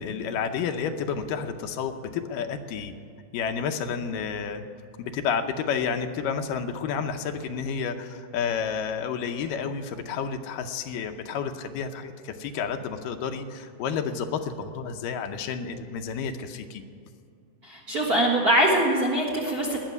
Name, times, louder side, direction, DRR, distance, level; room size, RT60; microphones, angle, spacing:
voice 1, 0.0-2.9 3.3-4.6 5.0-16.8, left 6 dB, 80° left, 6 dB, 2.4 m, -30 dB
voice 2, 17.6-19.8, right 1 dB, 40° right, -1 dB, 1.5 m, -23 dB
19.0 x 6.4 x 9.4 m, 2.4 s
omnidirectional pair, 3.9 m